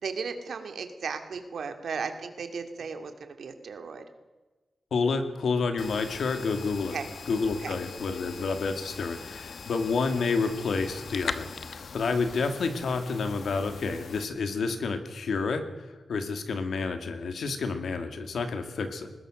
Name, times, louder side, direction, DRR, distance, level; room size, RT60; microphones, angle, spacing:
voice 1, 0.0-4.0 6.9-7.1 7.6-7.8, right 5 dB, 75° right, 7 dB, 2.4 m, -35 dB
voice 2, 4.9-6.9 7.3-19.1, left 4 dB, 85° left, 7 dB, 2.4 m, -29 dB
sound 1, 5.8-14.2, left 5 dB, 60° left, 1.1 m, -41 dB
21.5 x 20.0 x 6.5 m, 1.2 s
wide cardioid pair, 160°, 0 cm